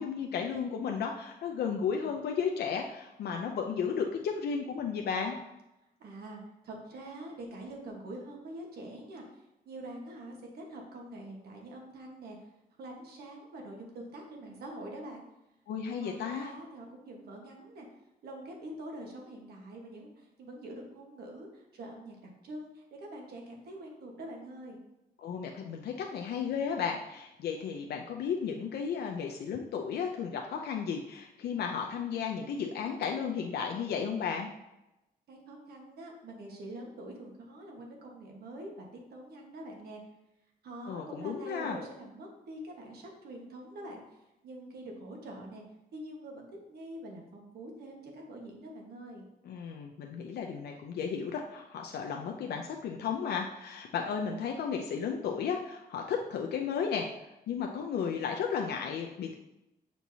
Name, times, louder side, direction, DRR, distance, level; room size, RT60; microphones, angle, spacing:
voice 1, 0.0-5.4 15.7-16.5 25.2-34.5 40.9-41.8 49.4-57.1 57.5-59.3, left 6 dB, 80° left, 2 dB, 0.5 m, -34 dB
voice 2, 6.0-12.4 12.8-15.2 16.0-17.9 18.2-24.8 35.3-40.0 40.6-44.0 44.4-45.6 45.9-49.3, right 1 dB, 75° right, 0 dB, 1.3 m, -45 dB
8.1 x 4.5 x 2.7 m, 0.93 s
wide cardioid pair, 170°, 16 cm